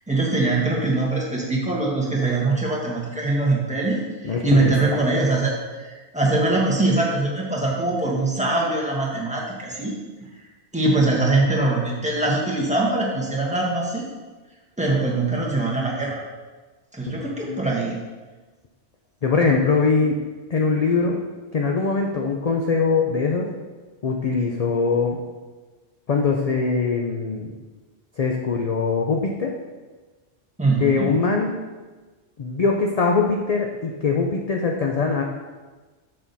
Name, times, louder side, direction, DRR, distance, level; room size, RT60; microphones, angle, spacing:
voice 1, 0.1-5.5 5.8-10.0 10.7-14.0 14.8-16.2 16.9-18.0 30.6-31.1, right 2 dB, 5° right, -5 dB, 1.4 m, -22 dB
voice 2, 4.2-4.7 17.4-17.6 19.2-20.2 20.5-21.2 21.5-23.5 24.0-25.2 26.1-27.5 28.2-29.5 30.8-31.5 32.4-35.2, left 4 dB, 45° left, 1 dB, 0.5 m, -22 dB
6.6 x 6.0 x 4.1 m, 1.3 s
omnidirectional pair, 1.2 m